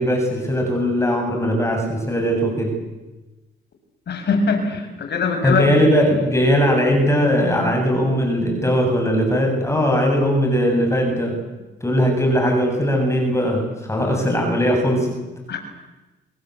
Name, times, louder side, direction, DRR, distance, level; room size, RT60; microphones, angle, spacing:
voice 1, 0.0-2.7 5.4-11.4 11.8-15.1, equal, 15° left, 2 dB, 7.9 m, -19 dB
voice 2, 4.1-5.7 15.5-15.7, left 4 dB, 60° left, 6 dB, 6.6 m, -22 dB
27.0 x 22.0 x 8.3 m, 1.1 s
cardioid pair, 90°, 20 cm